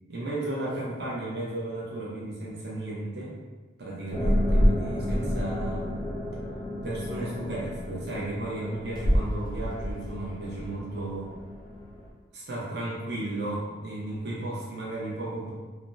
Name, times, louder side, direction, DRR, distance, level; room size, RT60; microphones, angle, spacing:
voice 1, 0.1-3.3 3.8-6.1 6.8-11.3 12.3-15.5, right 2 dB, 55° right, -6 dB, 0.7 m, -34 dB
sound 1, 4.1-12.1, equal, 25° left, 0.4 m, -29 dB
3.2 x 2.0 x 2.6 m, 1.3 s
head